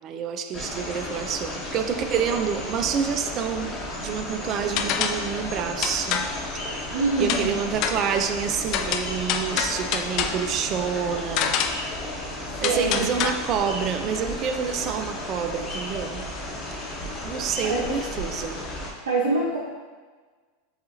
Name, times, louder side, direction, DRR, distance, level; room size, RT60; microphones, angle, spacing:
voice 1, 0.0-6.3 6.7-6.8 7.2-11.6 12.6-16.3 17.2-18.6, right 7 dB, 40° right, 7 dB, 0.4 m, -28 dB
sound 1, 0.5-18.9, left 1 dB, 25° left, 1.0 m, -34 dB
sound 2, 4.8-5.3 5.8-6.4 7.3-7.5 7.8-8.1 8.7-10.5 11.4-11.9 12.6-13.3, left 8 dB, 50° left, 0.3 m, -27 dB
voice 2, 6.9-7.5 12.6-13.1 17.7-17.8 19.1-19.6, right 3 dB, 75° right, -6 dB, 0.7 m, -24 dB
6.9 x 2.4 x 2.6 m, 1.4 s
hypercardioid pair, 90°, 0 cm